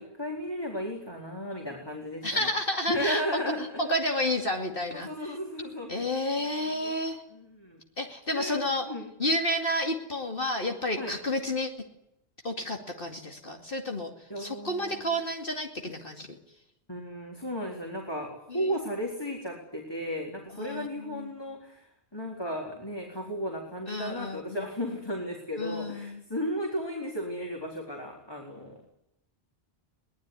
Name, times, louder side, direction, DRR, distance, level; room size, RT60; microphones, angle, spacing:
voice 1, 0.0-2.5 2.9-3.9 4.9-6.1 6.4-6.9 7.3-7.8 8.3-8.6 8.9-9.0 11.0-11.1 14.3-15.2 16.9-28.8, equal, 20° left, 0 dB, 4.3 m, -35 dB
voice 2, 2.2-3.4 3.8-5.4 5.9-7.2 8.0-8.9 9.2-11.7 12.4-16.3 18.5-18.7 20.6-21.3 23.9-24.7 25.6-26.2, left 1 dB, 55° left, 3 dB, 2.7 m, -31 dB
23.5 x 19.0 x 9.8 m, 0.81 s
omnidirectional pair, 1.1 m